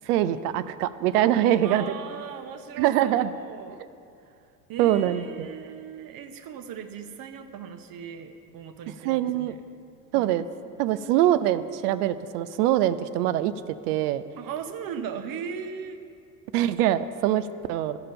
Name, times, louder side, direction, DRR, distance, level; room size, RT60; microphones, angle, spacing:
voice 1, 0.1-1.8 2.8-3.3 4.8-5.5 9.0-9.5 10.1-10.4 10.8-14.2 16.5-18.0, right 12 dB, 65° right, 13 dB, 0.6 m, -23 dB
voice 2, 1.6-3.8 4.2-9.6 10.1-10.3 14.4-16.0, right 7 dB, 45° right, 8 dB, 0.9 m, -38 dB
13.0 x 5.0 x 5.6 m, 2.5 s
hypercardioid pair, 80°, 49 cm